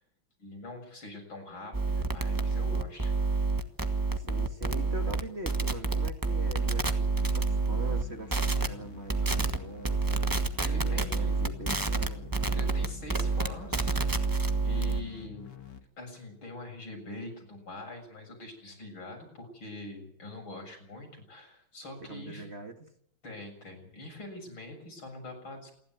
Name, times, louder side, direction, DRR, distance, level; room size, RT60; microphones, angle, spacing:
voice 1, 0.4-3.4 9.2-9.3 10.6-11.4 12.5-14.3 14.6-15.5 16.0-22.5 23.2-25.7, left 1 dB, 80° left, 2 dB, 7.9 m, -44 dB
sound 1, 1.7-8.0 8.3-8.7 9.1-9.6 9.8-15.0, right 3 dB, 10° right, 1.1 m, -28 dB
voice 2, 4.1-10.2 10.6-12.4 22.0-22.8, right 2 dB, 35° right, 5 dB, 2.1 m, -43 dB
sound 2, 7.2-15.8, left 8 dB, 60° left, 2.7 m, -47 dB
28.0 x 11.5 x 9.4 m, 0.68 s
omnidirectional pair, 2.2 m